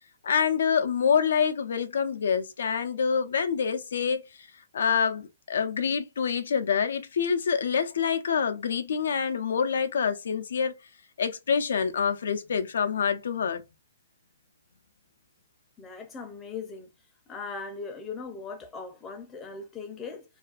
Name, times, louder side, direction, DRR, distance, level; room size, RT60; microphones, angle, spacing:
voice 1, 0.2-4.2 4.7-10.7 11.2-13.6, left 6 dB, 75° left, 0.3 m, -26 dB
voice 2, 15.8-16.9 17.3-20.2, left 4 dB, 15° left, 0.5 m, -39 dB
2.4 x 2.2 x 2.4 m
hypercardioid pair, 140°, 0 cm